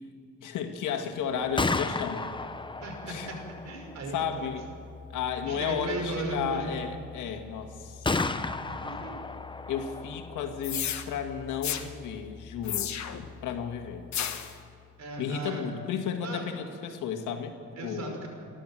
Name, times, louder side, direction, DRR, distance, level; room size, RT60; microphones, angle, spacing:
voice 1, 0.4-2.3 3.0-3.3 4.1-4.7 5.1-8.2 9.7-12.9 13.4-14.0 15.2-18.2, left 7 dB, 85° left, 5 dB, 1.9 m, -33 dB
Gunshot gunfire, 1.3-15.1, left 3 dB, 15° left, 0.8 m, -37 dB
voice 2, 2.8-3.1 3.6-4.5 5.4-6.8 8.7-9.1 15.0-15.6 16.2-16.5 17.8-18.3, right 3 dB, 60° right, 3 dB, 5.5 m, -36 dB
sound 1, 10.6-11.0 11.6-11.8 12.6-13.3 14.1-14.5, left 10 dB, 65° left, 1.4 m, -32 dB
29.0 x 12.0 x 7.6 m, 2.4 s
cardioid pair, 90°, 30 cm